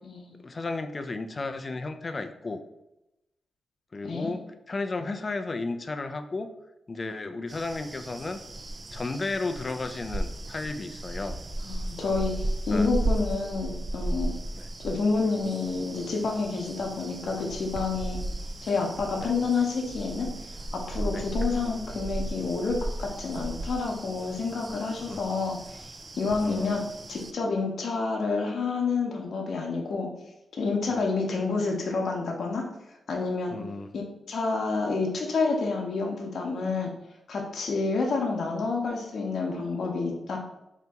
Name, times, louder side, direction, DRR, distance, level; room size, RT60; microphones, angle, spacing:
voice 1, 0.4-2.6 3.9-6.5 6.9-8.4 8.9-11.4 12.7-12.9 14.5-14.7 19.2-19.3 21.1-21.2 25.1-25.2 26.4-26.8 33.5-33.9, left 3 dB, 35° left, 8 dB, 0.4 m, -33 dB
voice 2, 4.0-4.3 11.6-14.3 14.8-18.2 18.6-20.3 20.7-25.9 26.2-26.8 27.1-30.1 30.6-32.6 33.1-33.6 33.9-36.9 37.3-40.4, left 4 dB, 70° left, 0 dB, 0.8 m, -29 dB
sound 1, 7.5-27.3, right 1 dB, 35° right, 0.4 m, -35 dB
4.0 x 2.8 x 3.4 m, 0.91 s
cardioid pair, 80°, 0 cm